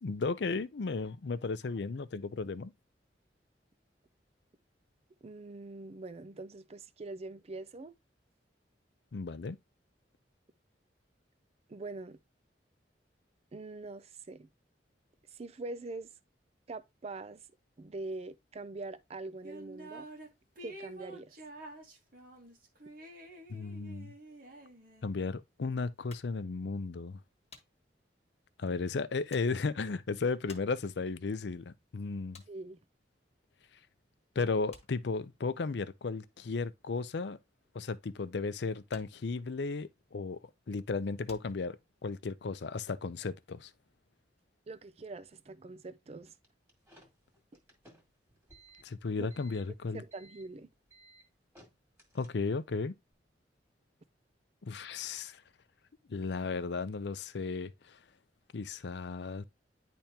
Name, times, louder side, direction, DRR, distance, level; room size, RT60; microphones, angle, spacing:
voice 1, 0.0-2.7 9.1-9.6 23.5-24.1 25.0-27.2 28.6-32.4 34.4-37.4 37.7-40.4 40.7-41.8 42.0-43.7 48.8-50.0 52.1-52.9 54.6-55.4 56.1-58.0 58.5-59.4, left 4 dB, 70° left, 0.5 m, -35 dB
voice 2, 5.2-7.9 11.7-12.2 13.5-14.5 15.3-16.1 16.7-17.4 17.8-20.1 20.6-21.3 32.5-32.8 44.7-46.3 49.2-49.3 49.9-50.7, right 3 dB, 35° right, 0.5 m, -43 dB
sound 1, 19.4-20.3 20.6-25.2, right 1 dB, 55° right, 1.6 m, -49 dB
sound 2, 26.1-33.9 34.2-42.3, left 5 dB, 35° left, 1.4 m, -60 dB
sound 3, 46.4-52.7, right 1 dB, 15° right, 2.2 m, -60 dB
10.5 x 3.5 x 2.8 m
head